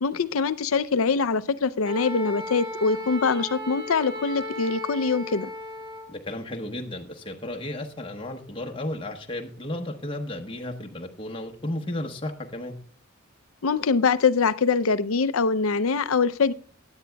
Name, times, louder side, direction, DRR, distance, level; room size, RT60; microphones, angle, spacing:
voice 1, 0.0-5.5 13.6-16.5, left 5 dB, 70° left, 15 dB, 0.6 m, -23 dB
Wind instrument woodwind instrument, 1.8-6.1, left 1 dB, 25° right, 2.2 m, -35 dB
voice 2, 6.1-12.8, left 1 dB, 25° left, 2 dB, 1.1 m, -33 dB
16.5 x 10.5 x 2.3 m, 0.42 s
head